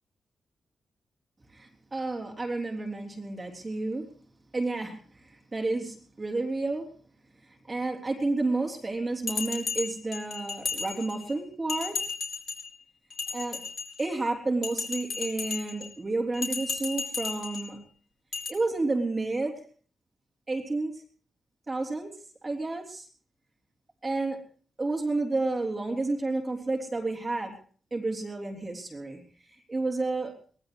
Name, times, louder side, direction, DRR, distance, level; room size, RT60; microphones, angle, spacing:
voice 1, 1.5-4.0 4.5-6.8 7.7-12.0 13.3-13.6 14.0-17.8 18.5-19.6 20.5-20.9 21.7-22.1 22.4-23.1 24.0-24.4 24.8-27.5 27.9-29.2 29.7-30.3, right 2 dB, 25° right, 1 dB, 3.4 m, -30 dB
Bell, 9.3-11.3 11.7-12.7 13.1-14.1 14.6-15.9 16.3-17.7 18.3-18.5, left 5 dB, 50° left, 4.9 m, -34 dB
24.0 x 20.0 x 3.0 m, 0.44 s
wide cardioid pair, 145°, 0 cm